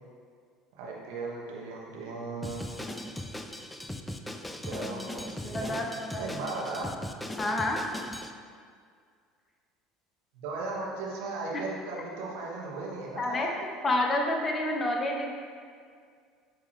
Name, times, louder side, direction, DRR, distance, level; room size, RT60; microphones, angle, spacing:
voice 1, 0.8-2.7 4.6-5.7 6.2-7.0 10.3-13.5, right 3 dB, 60° right, -3 dB, 1.1 m, -37 dB
Drum kit, 2.4-8.3, left 1 dB, 10° left, 0.4 m, -38 dB
voice 2, 5.4-6.6 7.4-7.8 13.2-15.3, left 1 dB, 25° left, 1 dB, 0.8 m, -29 dB
8.7 x 3.6 x 3.2 m, 2.1 s
figure-of-eight pair, 65°, 0 cm